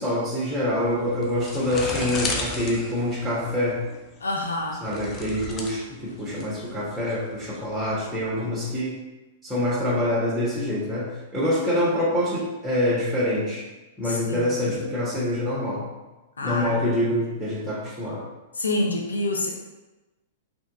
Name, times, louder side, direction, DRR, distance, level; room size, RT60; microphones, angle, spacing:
voice 1, 0.0-3.8 4.8-9.0 9.4-13.7 14.0-15.9 16.4-18.2, left 1 dB, ahead, -7 dB, 1.4 m, -26 dB
sound 1, 0.7-8.4, left 3 dB, 25° left, 0.7 m, -35 dB
voice 2, 4.2-4.8 14.0-14.5 16.4-16.8 18.5-19.5, left 2 dB, 80° left, 0 dB, 0.7 m, -27 dB
4.3 x 3.0 x 3.6 m, 1.1 s
hypercardioid pair, 105°, 0 cm